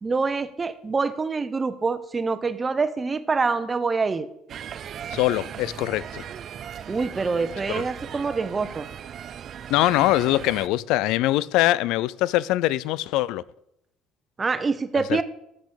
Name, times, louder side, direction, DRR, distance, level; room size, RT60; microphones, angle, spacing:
voice 1, 0.0-4.3 6.9-8.9 14.4-15.2, right 4 dB, 20° right, 1.0 m, -25 dB
sound 1, 4.5-10.7, right 9 dB, 45° right, 0.6 m, -38 dB
voice 2, 5.1-6.3 7.7-7.8 9.7-13.4 15.1-15.2, left 16 dB, 80° left, 0.5 m, -23 dB
13.5 x 6.2 x 8.3 m
cardioid pair, 140°, 0 cm